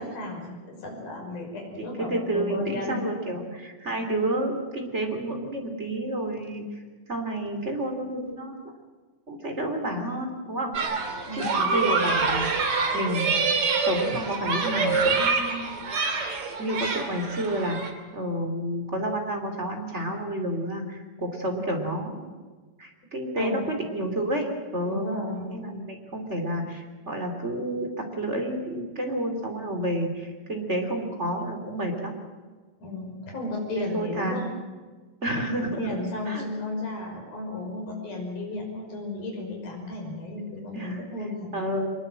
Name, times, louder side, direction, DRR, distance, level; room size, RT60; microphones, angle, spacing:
voice 1, 0.0-3.4 11.3-11.7 23.4-23.7 24.8-25.5 32.8-34.5 35.8-41.5, left 2 dB, 50° left, 1 dB, 7.2 m, -34 dB
voice 2, 1.8-6.6 7.1-8.6 9.3-10.7 11.3-12.6 12.9-13.3 13.8-15.7 16.3-22.3 22.8-25.1 25.4-32.1 33.7-34.4 35.2-36.0 36.2-36.4 40.7-41.0 41.5-41.9, right 1 dB, 20° right, 3 dB, 2.3 m, -30 dB
sound 1, 10.7-17.9, right 4 dB, 40° right, 2.5 m, -26 dB
24.5 x 22.0 x 7.7 m, 1.4 s
omnidirectional pair, 5.7 m